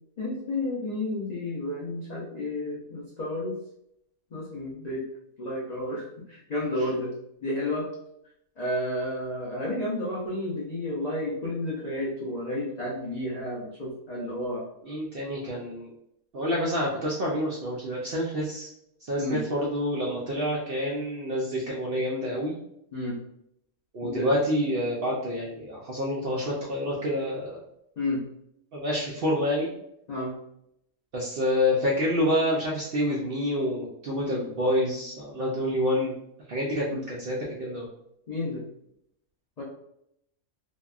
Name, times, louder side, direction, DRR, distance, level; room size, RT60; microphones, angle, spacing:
voice 1, 0.2-3.5 4.3-5.0 5.4-7.1 7.4-7.9 8.6-14.6 19.2-19.4 22.9-23.2 24.0-24.3 28.0-28.2 30.1-30.3 34.3-34.4 36.9-37.0 38.3-38.6 39.6-39.7, left 1 dB, 80° left, -6 dB, 0.3 m, -31 dB
voice 2, 14.8-15.9 16.3-18.7 19.0-22.6 23.9-27.6 28.7-29.7 31.1-36.1 36.5-37.9, equal, 70° right, -4 dB, 0.5 m, -28 dB
2.8 x 2.1 x 2.3 m, 0.76 s
omnidirectional pair, 1.5 m